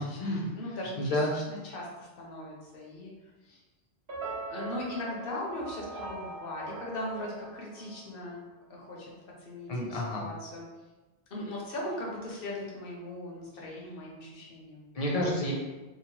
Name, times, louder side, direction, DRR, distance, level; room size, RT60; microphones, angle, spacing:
voice 1, 0.0-0.5 1.0-1.3 9.7-10.2 14.9-15.5, left 1 dB, 45° left, -4 dB, 0.5 m, -30 dB
voice 2, 0.5-3.1 3.4-3.6 4.5-8.4 8.7-9.1 9.4-10.7 11.3-14.9, left 1 dB, 65° left, -3 dB, 0.8 m, -39 dB
sound 1, 4.1-8.4, right 3 dB, 70° right, 0.9 m, -41 dB
2.8 x 2.0 x 2.9 m, 1.2 s
omnidirectional pair, 1.1 m